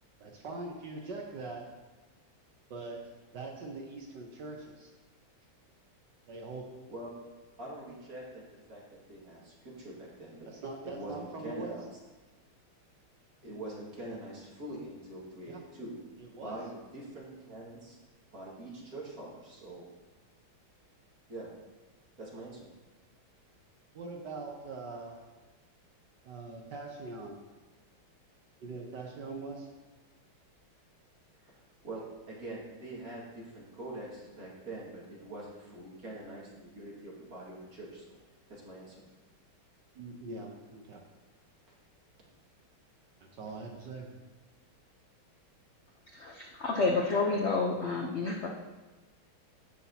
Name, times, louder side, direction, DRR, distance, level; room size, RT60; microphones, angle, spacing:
voice 1, 0.2-1.6 2.7-3.0 3.3-4.9 6.3-6.6 10.4-11.8 15.5-15.6 16.2-16.6 23.9-25.2 26.2-27.4 28.6-29.7 39.9-41.0 43.2-44.1, right 3 dB, 60° right, 1 dB, 1.4 m, -42 dB
voice 2, 7.6-8.4 8.7-10.5 10.8-11.9 13.4-15.9 16.4-18.0 18.3-19.9 21.3-21.5 22.2-22.7 31.5-31.6 31.8-38.2 38.5-39.0, right 1 dB, 45° right, -5 dB, 2.5 m, -44 dB
voice 3, 46.1-48.5, left 3 dB, 75° left, 0 dB, 0.6 m, -29 dB
16.5 x 5.7 x 2.8 m, 1.2 s
omnidirectional pair, 2.2 m